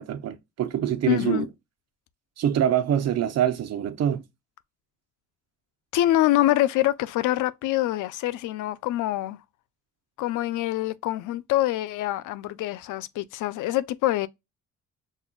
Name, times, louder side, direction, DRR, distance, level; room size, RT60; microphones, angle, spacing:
voice 1, 0.0-1.5 2.4-4.2, right 10 dB, 60° right, 0.7 m, -25 dB
voice 2, 1.1-1.5 5.9-9.4 10.2-14.3, left 14 dB, 80° left, 0.5 m, -25 dB
5.3 x 2.2 x 2.3 m
cardioid pair, 90°, 30 cm